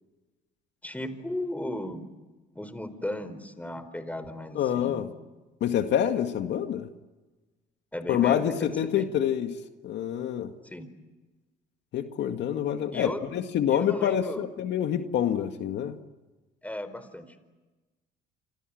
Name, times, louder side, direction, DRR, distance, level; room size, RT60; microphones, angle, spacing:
voice 1, 0.8-2.1 2.5-5.0 7.9-8.7 9.0-9.1 10.6-10.9 12.9-13.2 13.7-14.4 16.6-17.4, left 1 dB, 5° left, 12 dB, 4.5 m, -36 dB
voice 2, 4.6-5.1 5.6-6.9 8.1-9.5 9.8-10.5 11.9-16.0, left 9 dB, 65° left, 7 dB, 2.0 m, -27 dB
28.5 x 26.0 x 7.9 m, 1.2 s
supercardioid pair, 80°, 20 cm